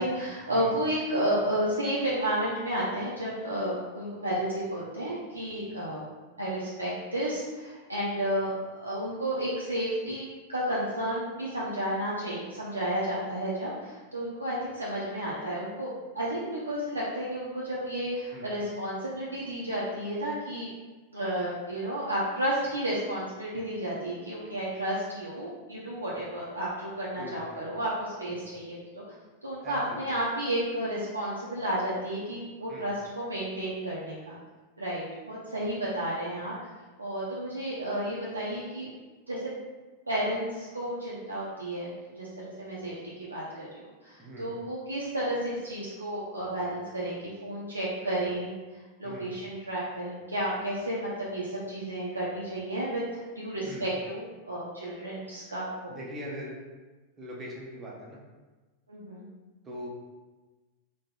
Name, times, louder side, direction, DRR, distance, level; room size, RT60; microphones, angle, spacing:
voice 1, 0.0-6.0 6.4-8.5 8.8-20.7 21.1-28.8 29.4-34.4 34.8-36.5 37.0-38.9 39.3-39.4 40.1-42.9 43.2-48.5 49.0-56.0 58.9-59.2, right 1 dB, 80° right, -7 dB, 0.4 m, -32 dB
voice 2, 27.2-27.7 28.3-28.5 29.6-30.1 32.7-32.9 44.2-44.5 49.0-49.3 53.6-53.9 55.9-56.6 57.2-58.2 59.6-59.9, equal, 20° right, -4 dB, 0.5 m, -41 dB
3.5 x 2.0 x 2.3 m, 1.3 s
figure-of-eight pair, 90°, 0 cm